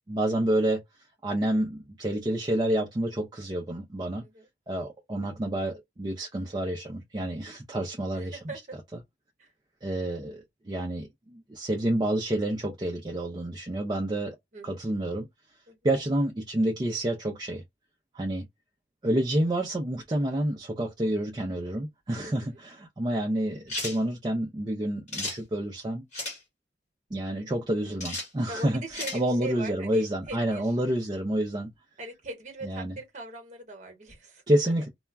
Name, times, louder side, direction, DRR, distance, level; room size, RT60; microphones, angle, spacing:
voice 1, 0.1-0.8 1.2-4.3 4.7-8.4 9.8-14.4 14.6-15.3 15.8-17.6 18.1-18.5 19.0-26.0 27.1-28.8 29.1-31.7 32.6-33.0 34.5-34.9, right 1 dB, 25° right, 0.4 m, -28 dB
voice 2, 8.1-8.8 9.4-9.5 14.5-14.8 15.7-15.8 22.2-22.6 28.5-30.7 32.0-34.7, right 2 dB, 40° right, 0.9 m, -41 dB
sound 1, 23.7-24.0 25.1-25.4 26.1-26.4 28.0-28.3 28.9-29.2, left 2 dB, 40° left, 1.1 m, -33 dB
2.2 x 2.1 x 3.3 m
head